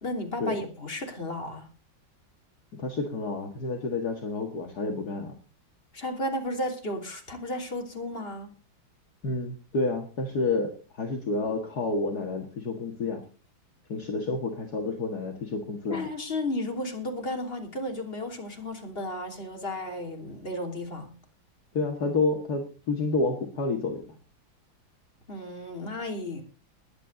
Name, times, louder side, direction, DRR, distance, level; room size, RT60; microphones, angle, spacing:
voice 1, 0.0-1.7 5.9-8.5 15.9-21.1 25.3-26.4, left 1 dB, 30° left, 3 dB, 3.4 m, -33 dB
voice 2, 2.8-5.3 9.2-13.2 13.9-16.1 21.7-24.0, left 3 dB, 50° left, 3 dB, 2.3 m, -29 dB
21.5 x 9.0 x 4.0 m, 0.35 s
omnidirectional pair, 2.2 m